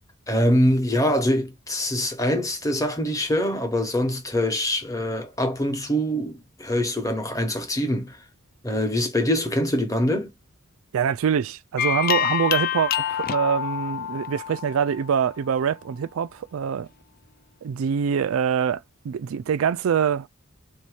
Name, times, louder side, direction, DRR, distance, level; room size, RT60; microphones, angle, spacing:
voice 1, 0.3-8.2 8.6-10.3, left 1 dB, 15° left, 1.0 m, -24 dB
voice 2, 10.9-16.9 17.6-20.3, right 7 dB, 70° right, 0.3 m, -24 dB
sound 1, 11.8-15.3, left 10 dB, 45° left, 0.4 m, -27 dB
3.8 x 2.8 x 4.8 m
head